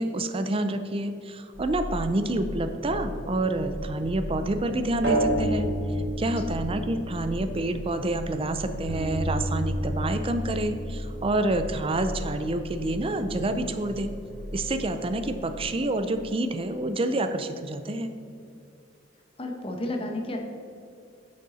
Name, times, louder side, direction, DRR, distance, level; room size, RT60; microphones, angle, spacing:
voice 1, 0.0-5.7 6.2-14.1 14.5-18.1, right 2 dB, 30° right, 9 dB, 0.5 m, -28 dB
sound 1, 1.5-15.6, equal, 10° left, 1.8 m, -38 dB
sound 2, 3.5-8.3 8.9-12.2, right 1 dB, 75° right, 2.3 m, -31 dB
voice 2, 19.4-20.4, left 1 dB, 30° left, 2 dB, 1.0 m, -31 dB
9.3 x 6.5 x 4.2 m, 2.5 s
head